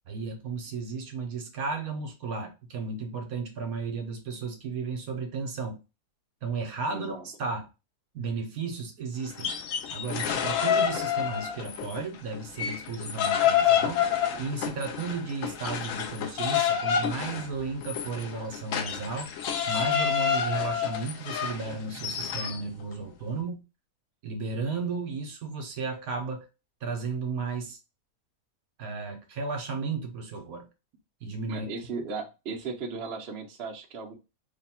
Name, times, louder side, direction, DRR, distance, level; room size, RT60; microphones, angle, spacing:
voice 1, 0.1-5.8 6.4-7.7 8.1-9.6 9.9-14.0 14.4-19.3 19.7-23.6 24.2-26.5 26.8-27.8 28.8-30.7 31.2-31.7, right 4 dB, 70° right, 1.2 m, -34 dB
voice 2, 6.9-7.3 31.5-34.2, right 4 dB, 50° right, 0.9 m, -36 dB
sound 1, 9.3-12.0 12.3-22.6, left 8 dB, 65° left, 0.9 m, -28 dB
3.3 x 2.2 x 4.2 m
omnidirectional pair, 1.7 m